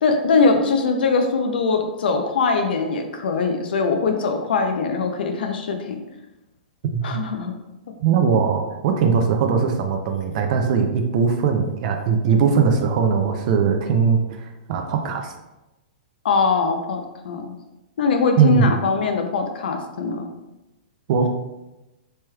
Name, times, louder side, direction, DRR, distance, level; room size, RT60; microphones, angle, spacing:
voice 1, 0.0-6.0 7.0-7.5 16.2-17.5 18.0-20.3, left 4 dB, 80° left, 4 dB, 0.4 m, -21 dB
voice 2, 6.8-7.2 8.0-15.3 18.4-18.7 21.1-21.3, right 6 dB, 50° right, 4 dB, 0.4 m, -20 dB
3.2 x 3.0 x 2.2 m, 0.98 s
hypercardioid pair, 145°, 5 cm